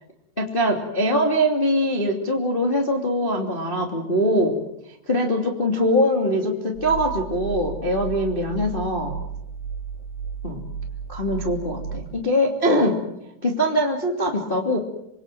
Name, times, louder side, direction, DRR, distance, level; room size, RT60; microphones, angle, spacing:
voice 1, 0.4-4.5 5.0-9.2 10.4-10.6 11.1-12.9 13.4-14.8, equal, 15° left, 1 dB, 1.8 m, -22 dB
sound 1, 6.7-12.1, right 6 dB, 85° right, 4.6 m, -33 dB
27.0 x 22.5 x 7.7 m, 0.81 s
omnidirectional pair, 5.5 m